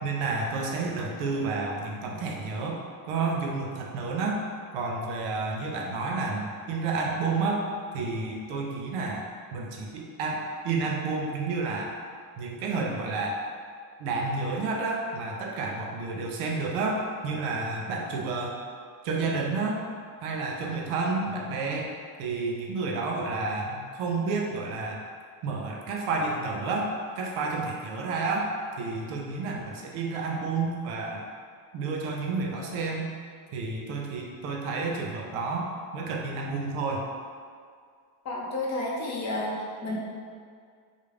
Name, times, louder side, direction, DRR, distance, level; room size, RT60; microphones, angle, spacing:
voice 1, 0.0-2.8 3.1-4.4 4.7-7.7 7.9-11.9 12.4-13.4 14.0-18.6 19.0-19.8 20.2-21.9 22.2-25.0 25.4-31.2 31.7-33.1 33.5-35.7 35.9-37.0, right 3 dB, 80° right, 0 dB, 0.6 m, -30 dB
voice 2, 38.2-40.0, left 2 dB, 35° left, -3 dB, 0.5 m, -31 dB
2.4 x 2.0 x 3.1 m, 2.1 s
cardioid pair, 100°, 50 cm